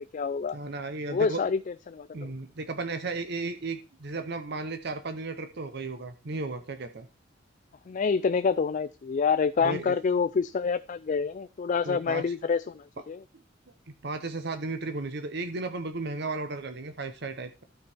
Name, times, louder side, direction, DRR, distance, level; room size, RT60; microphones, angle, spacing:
voice 1, 0.0-0.6 1.1-1.6 1.9-2.3 7.9-13.2, left 5 dB, 45° left, 0.4 m, -27 dB
voice 2, 0.5-1.4 2.1-7.1 9.6-10.0 11.8-12.2 14.0-17.6, right 3 dB, 60° right, 0.8 m, -34 dB
12.5 x 5.1 x 4.3 m
head